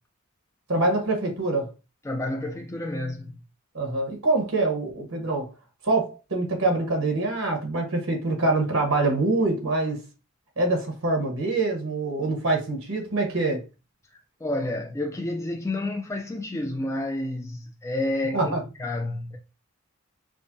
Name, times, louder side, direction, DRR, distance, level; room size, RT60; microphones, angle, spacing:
voice 1, 0.7-1.7 3.7-5.5 5.8-10.0 10.6-13.6 18.3-18.6, right 2 dB, 80° right, 1.1 m, -25 dB
voice 2, 2.0-3.4 14.1-19.4, left 1 dB, 15° left, 0.3 m, -30 dB
5.0 x 2.1 x 2.6 m
head